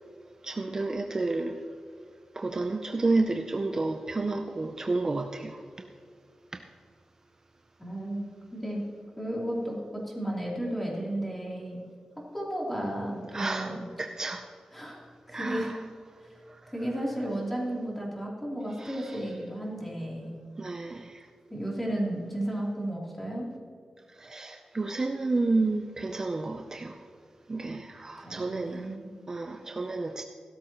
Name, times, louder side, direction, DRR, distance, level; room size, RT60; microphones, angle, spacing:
voice 1, 0.4-1.6 2.3-5.9 6.5-6.6 13.3-14.5 15.3-15.8 16.5-16.7 18.8-19.3 20.6-21.3 24.1-27.1 27.5-28.9 29.3-30.2, right 3 dB, 30° right, 5 dB, 0.5 m, -31 dB
voice 2, 7.8-8.8 9.2-11.8 12.3-13.9 14.7-15.7 16.2-16.4 16.7-20.4 21.5-23.5 28.2-29.1, right 1 dB, 10° left, -4 dB, 3.2 m, -33 dB
16.5 x 12.5 x 3.0 m, 2.3 s
wide cardioid pair, 150°, 2 cm